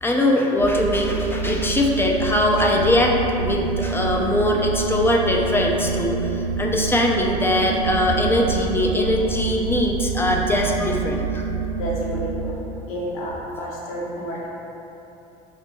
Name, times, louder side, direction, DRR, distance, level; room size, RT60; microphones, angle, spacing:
voice 1, 0.0-11.5, left 1 dB, 10° left, 0 dB, 0.3 m, -21 dB
sound 1, 0.6-12.5, right 5 dB, 90° right, 0.4 m, -27 dB
voice 2, 11.8-14.5, equal, 75° left, -4 dB, 0.8 m, -30 dB
4.1 x 2.2 x 3.0 m, 3.0 s
hypercardioid pair, 85°, 18 cm